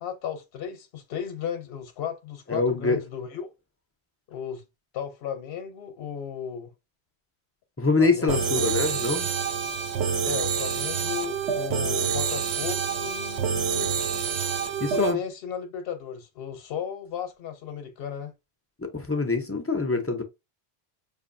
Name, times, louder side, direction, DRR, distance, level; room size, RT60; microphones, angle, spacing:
voice 1, 0.0-3.5 4.3-4.6 4.9-6.7 8.0-9.1 10.2-13.9 14.9-18.3, left 8 dB, 70° left, 0.9 m, -35 dB
voice 2, 2.5-3.0 7.8-9.3 14.8-15.2 18.8-20.2, left 3 dB, 20° left, 0.4 m, -24 dB
sound 1, 8.3-15.1, right 7 dB, 85° right, 0.9 m, -27 dB
4.9 x 2.6 x 2.5 m
omnidirectional pair, 1.1 m